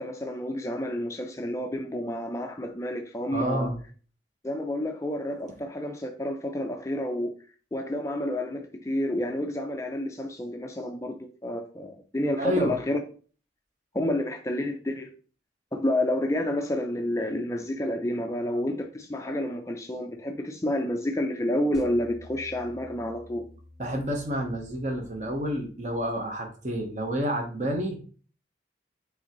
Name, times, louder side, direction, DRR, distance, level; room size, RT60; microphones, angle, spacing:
voice 1, 0.0-3.7 4.4-7.4 7.7-13.0 13.9-15.1 15.7-23.5, left 1 dB, 15° left, 0.4 m, -29 dB
voice 2, 3.3-3.8 12.4-12.8 23.8-28.0, equal, 40° right, 0.9 m, -29 dB
sound 1, 21.7-26.1, left 1 dB, 5° right, 0.8 m, -50 dB
5.2 x 3.4 x 2.9 m
head